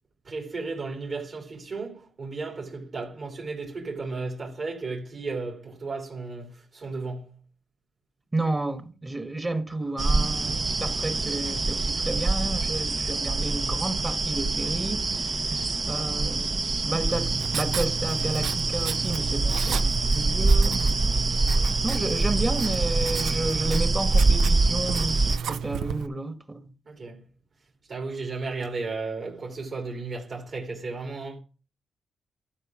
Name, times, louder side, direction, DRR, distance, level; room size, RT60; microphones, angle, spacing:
voice 1, 0.2-7.3 26.8-27.2 27.9-31.4, right 3 dB, 55° right, 2.8 m, -34 dB
voice 2, 8.3-15.0 15.5-15.6 15.9-21.1 21.8-26.7, right 2 dB, 20° right, 1.4 m, -31 dB
sound 1, 10.0-25.4, right 3 dB, 40° right, 0.7 m, -25 dB
Writing, 17.1-26.1, right 7 dB, 80° right, 0.5 m, -33 dB
12.0 x 4.7 x 6.1 m
cardioid pair, 65°, 0 cm